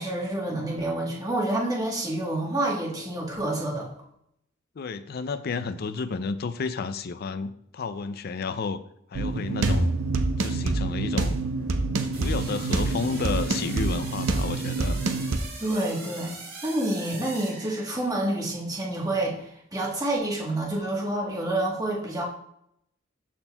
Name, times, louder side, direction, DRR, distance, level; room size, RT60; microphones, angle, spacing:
voice 1, 0.0-3.9 15.6-16.3 16.6-22.2, right 1 dB, 20° right, -3 dB, 1.3 m, -28 dB
voice 2, 4.8-8.8 9.1-9.9 10.4-11.4 12.0-15.0, left 4 dB, 50° left, 12 dB, 0.4 m, -31 dB
sound 1, 9.1-15.4, right 3 dB, 85° right, 0.6 m, -26 dB
sound 2, 12.1-18.3, right 3 dB, 50° right, 2.2 m, -42 dB
12.5 x 4.3 x 2.3 m, 0.73 s
head